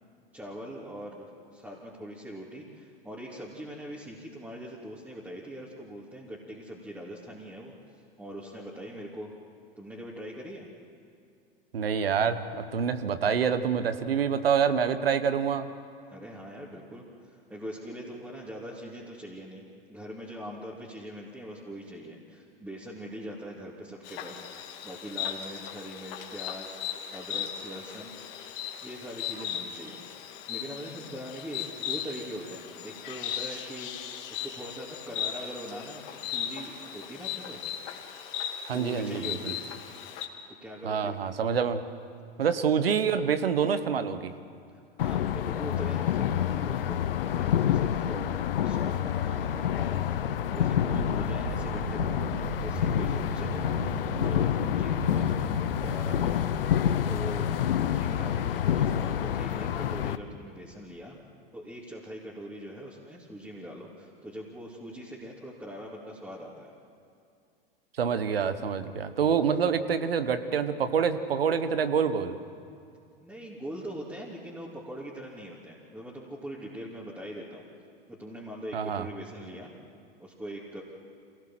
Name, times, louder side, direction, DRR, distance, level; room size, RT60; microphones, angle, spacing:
voice 1, 0.3-7.7 8.2-9.3 9.8-10.7 16.1-19.6 19.9-26.8 27.1-28.1 28.8-30.0 30.5-33.9 34.3-37.7 38.7-39.6 39.9-40.1 40.6-41.2 44.7-48.3 48.6-53.7 54.2-56.5 57.1-61.2 61.5-66.7 73.2-77.7 78.1-79.7 80.2-80.8, equal, 5° right, -6 dB, 3.2 m, -42 dB
voice 2, 11.7-15.7 38.6-39.5 40.8-41.8 42.4-44.3 68.0-72.3 78.7-79.1, right 7 dB, 80° right, 11 dB, 1.4 m, -26 dB
Insect, 24.0-40.3, left 9 dB, 55° left, 2.4 m, -37 dB
sound 1, 45.0-60.2, left 10 dB, 70° left, 0.9 m, -28 dB
sound 2, 50.9-57.7, right 14 dB, 60° right, 0.7 m, -39 dB
27.0 x 18.0 x 7.8 m, 2.4 s
hypercardioid pair, 90°, 29 cm